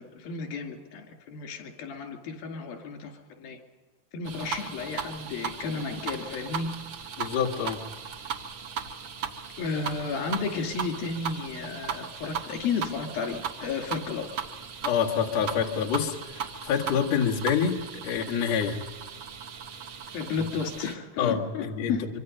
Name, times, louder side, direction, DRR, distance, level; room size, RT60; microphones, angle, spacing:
voice 1, 0.0-3.6 4.1-6.8 9.6-14.3 20.1-22.2, left 5 dB, 85° left, 3 dB, 4.3 m, -33 dB
sound 1, 4.2-21.0, right 7 dB, 75° right, 1.1 m, -37 dB
voice 2, 7.2-7.8 14.8-17.8 18.0-18.8 21.2-22.0, left 7 dB, 50° left, -2 dB, 2.8 m, -27 dB
25.5 x 24.5 x 5.4 m, 1.3 s
omnidirectional pair, 4.1 m